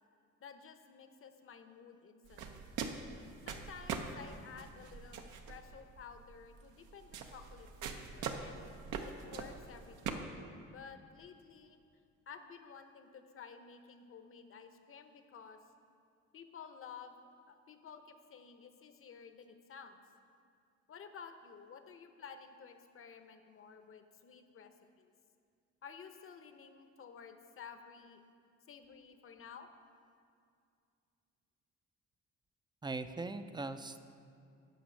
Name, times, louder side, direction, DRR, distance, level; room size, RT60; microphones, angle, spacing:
voice 1, 0.4-2.6 3.5-8.6 9.0-10.4 10.7-11.8 12.3-15.6 16.3-17.2 17.5-20.0 20.9-25.1 25.8-28.2 28.7-29.7, left 6 dB, 45° left, 8 dB, 0.8 m, -53 dB
sound 1, 2.3-10.1, right 6 dB, 80° right, 0.8 m, -43 dB
voice 2, 32.8-34.0, right 3 dB, 15° right, 10 dB, 0.4 m, -40 dB
9.2 x 5.2 x 6.3 m, 2.4 s
cardioid pair, 90°, 30 cm